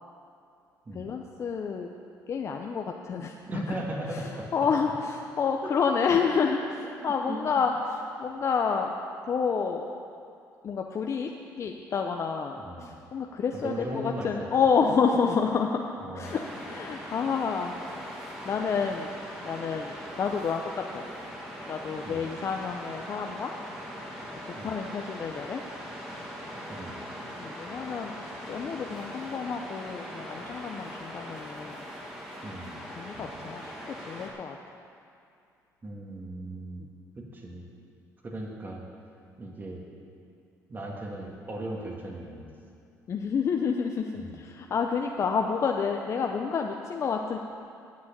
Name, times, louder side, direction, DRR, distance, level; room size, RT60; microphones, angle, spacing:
voice 1, 0.9-1.9 2.3-3.8 4.5-6.6 7.0-8.9 9.2-9.9 10.6-11.3 11.6-15.9 16.1-17.7 18.4-19.1 19.4-21.0 21.7-23.5 24.6-25.6 27.4-31.8 33.0-33.7 34.1-34.6 36.8-36.9 43.1-47.4, left 6 dB, 45° left, 2 dB, 0.7 m, -29 dB
voice 2, 3.5-4.5 5.6-6.2 7.0-7.7 12.6-12.9 13.5-14.5 16.0-16.3 22.0-22.3 24.5-24.8 26.7-27.0 32.4-32.8 35.8-36.9 37.2-37.7 38.2-38.8 39.4-39.8 40.7-42.5 44.1-44.3, right 1 dB, 30° right, -1 dB, 2.2 m, -37 dB
Waves surf, 16.2-34.3, equal, 5° right, 2.5 m, -41 dB
9.7 x 6.2 x 8.5 m, 2.5 s
cardioid pair, 90°, 7 cm